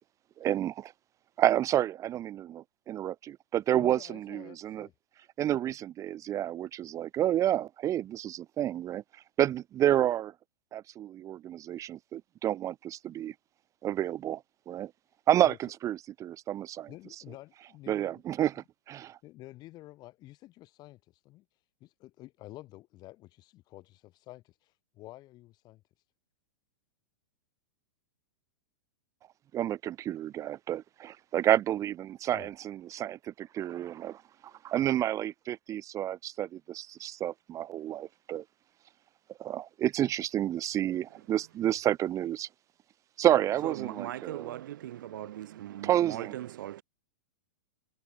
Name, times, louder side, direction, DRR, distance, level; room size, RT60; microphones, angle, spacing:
voice 1, 0.4-0.9 1.4-4.9 5.4-9.0 9.4-10.3 10.7-13.3 13.8-14.9 15.3-16.9 17.9-19.2 29.5-34.2 34.6-38.4 39.4-42.5 43.2-44.4 45.8-46.3, right 12 dB, 30° right, 1.1 m, -30 dB
voice 2, 3.8-4.9 15.4-15.6 16.9-18.2 19.0-26.1 32.3-32.5 34.5-34.6 44.9-45.3, left 17 dB, 35° left, 4.2 m, -50 dB
voice 3, 43.6-46.8, right 13 dB, 65° right, 7.6 m, -39 dB
hypercardioid pair, 115°, 11 cm